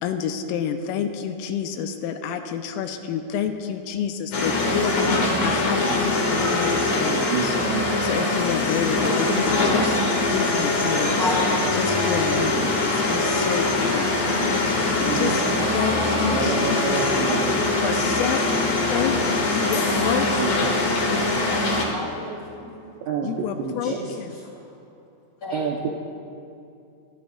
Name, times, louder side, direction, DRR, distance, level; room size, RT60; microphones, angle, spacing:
voice 1, 0.0-7.5 8.0-10.0 10.3-11.3 11.8-14.2 15.0-16.6 17.8-20.6 23.2-24.4, left 8 dB, 85° left, 7 dB, 3.2 m, -29 dB
sound 1, 4.3-21.9, left 2 dB, 65° left, 1.7 m, -22 dB
voice 2, 7.3-8.0 14.3-14.5 15.1-15.4 16.3-17.5 20.4-20.7 23.1-23.3 23.6-24.0 25.5-25.9, right 6 dB, 80° right, 0 dB, 2.7 m, -28 dB
voice 3, 11.2-11.9 12.2-13.2 16.0-17.9 19.2-19.8 20.7-23.5 23.8-24.1 24.4-24.8 25.4-25.7, left 1 dB, 25° left, -6 dB, 2.4 m, -35 dB
29.0 x 11.5 x 2.3 m, 2.6 s
omnidirectional pair, 5.9 m